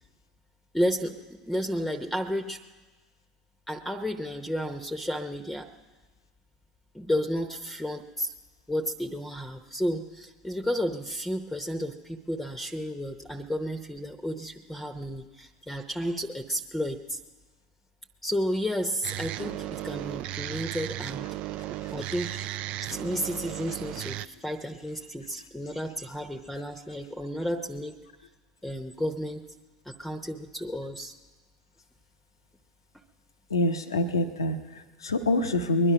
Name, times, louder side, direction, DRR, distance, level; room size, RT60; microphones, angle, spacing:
voice 1, 0.7-2.6 3.7-5.7 6.9-8.3 8.7-17.2 18.2-21.3 21.9-22.5 22.8-28.0 28.6-29.4 29.9-31.1, equal, 5° left, 6 dB, 0.9 m, -32 dB
sound 1, 19.0-24.3, right 14 dB, 55° right, 0.4 m, -35 dB
voice 2, 33.5-35.9, left 1 dB, 90° left, 6 dB, 0.8 m, -26 dB
21.0 x 11.0 x 5.8 m, 1.3 s
hypercardioid pair, 75°, 2 cm